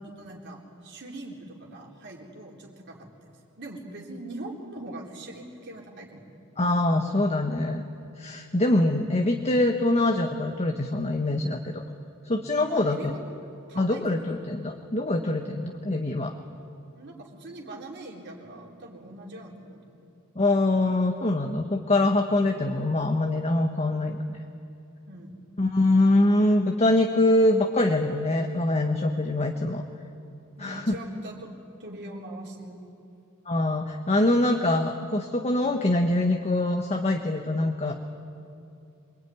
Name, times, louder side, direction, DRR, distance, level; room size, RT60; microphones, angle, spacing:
voice 1, 0.2-6.2 12.6-13.2 13.7-14.1 16.9-20.1 25.0-25.4 30.6-31.5 31.8-32.9, right 1 dB, 55° right, -2 dB, 4.1 m, -42 dB
voice 2, 6.6-7.9 8.2-11.8 12.2-13.1 13.8-16.3 20.4-24.4 25.6-29.8 30.6-30.9 33.5-37.9, left 2 dB, 30° left, 4 dB, 1.3 m, -24 dB
27.0 x 23.0 x 9.6 m, 2.7 s
head